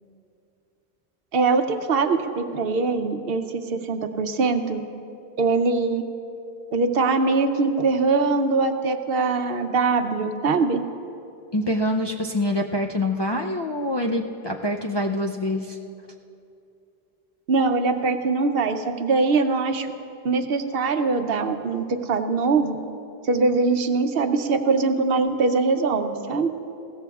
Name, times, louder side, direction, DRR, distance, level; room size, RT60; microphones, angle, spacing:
voice 1, 1.3-4.8 5.4-6.0 6.7-10.8 17.5-19.9 20.2-22.8 23.2-26.5, right 4 dB, 70° right, 8 dB, 0.9 m, -22 dB
voice 2, 11.5-15.8, left 1 dB, 35° left, 0 dB, 0.4 m, -25 dB
20.5 x 16.0 x 2.4 m, 2.7 s
omnidirectional pair, 1.0 m